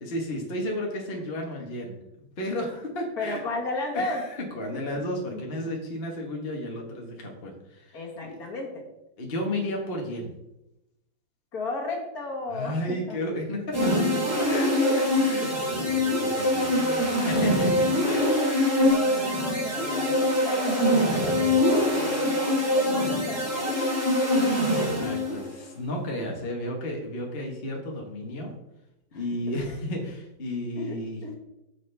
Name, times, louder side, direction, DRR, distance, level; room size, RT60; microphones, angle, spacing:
voice 1, 0.0-1.9 2.4-3.4 3.9-8.4 9.2-10.3 12.5-14.1 14.5-18.4 25.0-28.5 29.1-31.2, left 1 dB, 35° left, 0 dB, 1.4 m, -33 dB
voice 2, 3.2-4.2 4.7-4.8 5.3-5.7 7.9-8.8 11.5-13.2 14.7-15.0 15.3-15.5 15.8-16.3 18.0-18.1 18.4-24.0 29.1-29.2 30.7-31.0 31.2-31.4, left 2 dB, 50° left, -1 dB, 1.9 m, -35 dB
sound 1, 13.7-25.5, left 1 dB, 10° right, 2.4 m, -24 dB
8.5 x 7.0 x 3.4 m, 0.90 s
omnidirectional pair, 2.1 m